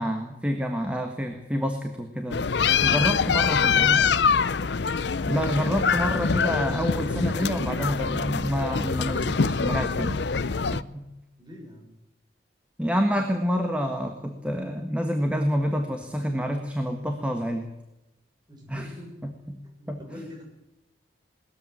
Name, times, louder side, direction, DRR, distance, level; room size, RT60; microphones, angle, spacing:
voice 1, 0.0-2.5 2.8-4.0 5.3-11.1 12.8-17.6 18.7-18.9 19.2-19.3 19.9-20.0, equal, 5° right, 5 dB, 1.5 m, -28 dB
sound 1, 2.3-10.8, left 5 dB, 65° left, 0.6 m, -24 dB
voice 2, 2.9-4.0 11.4-12.0 18.5-19.2 19.8-20.4, left 1 dB, 25° right, 0 dB, 6.7 m, -45 dB
20.0 x 14.0 x 9.6 m, 0.93 s
head